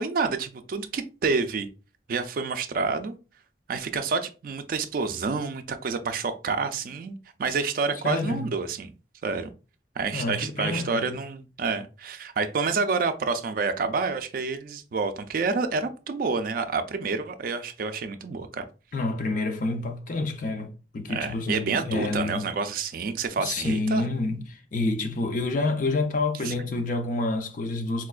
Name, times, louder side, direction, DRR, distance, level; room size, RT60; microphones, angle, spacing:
voice 1, 0.0-1.7 2.1-3.1 3.7-8.9 9.2-9.5 10.0-18.6 21.1-24.0 26.4-26.5, right 4 dB, 55° right, 0.3 m, -28 dB
voice 2, 8.0-8.5 10.1-11.2 18.9-22.5 23.4-28.1, left 2 dB, 45° left, 0.5 m, -28 dB
4.3 x 2.3 x 2.3 m
head